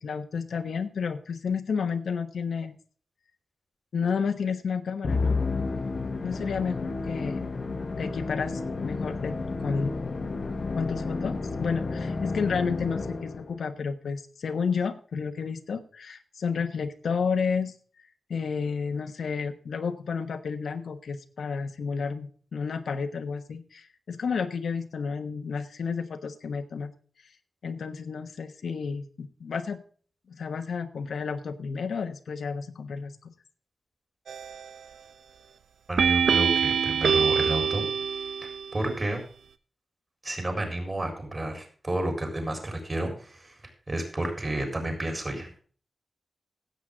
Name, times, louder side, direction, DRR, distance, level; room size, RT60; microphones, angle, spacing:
voice 1, 0.0-2.7 3.9-5.4 6.2-7.5 8.0-9.3 9.6-9.9 10.7-17.7 18.3-26.9 27.6-29.8 30.3-33.3, left 5 dB, 75° left, 7 dB, 1.2 m, -31 dB
Musical instrument, 5.0-13.6, left 3 dB, 40° left, 1.2 m, -31 dB
sound 1, 34.3-34.8 36.0-38.7, right 7 dB, 90° right, 0.8 m, -25 dB
voice 2, 35.9-37.9 38.4-39.2 40.2-45.6, right 1 dB, 25° right, 4 dB, 4.1 m, -31 dB
16.0 x 8.4 x 3.6 m, 0.43 s
wide cardioid pair, 165°, 0 cm